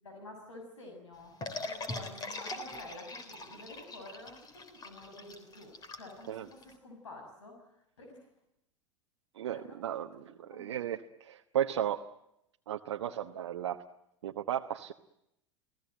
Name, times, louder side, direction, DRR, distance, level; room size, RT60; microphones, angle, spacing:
voice 1, 0.0-7.6 8.0-8.3 9.4-10.7 13.0-13.2, left 2 dB, 75° left, 3 dB, 6.7 m, -50 dB
sound 1, 1.4-6.7, left 2 dB, 25° left, 3.8 m, -42 dB
voice 2, 9.4-12.0 12.7-13.8 14.2-14.9, right 11 dB, 65° right, 5 dB, 1.1 m, -35 dB
29.5 x 17.5 x 9.2 m, 0.82 s
figure-of-eight pair, 80°, 16 cm